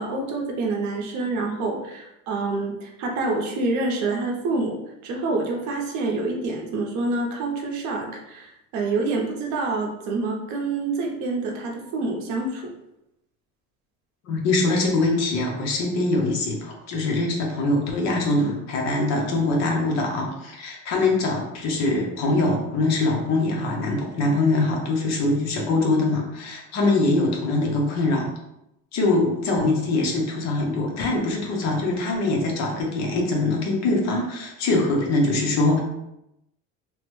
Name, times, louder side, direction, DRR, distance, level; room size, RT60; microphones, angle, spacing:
voice 1, 0.0-4.8 5.0-12.7, right 3 dB, 60° right, 1 dB, 0.6 m, -27 dB
voice 2, 14.2-28.3 28.9-35.8, left 2 dB, 55° left, 0 dB, 0.7 m, -23 dB
3.0 x 2.1 x 3.0 m, 0.87 s
cardioid pair, 170°, 32 cm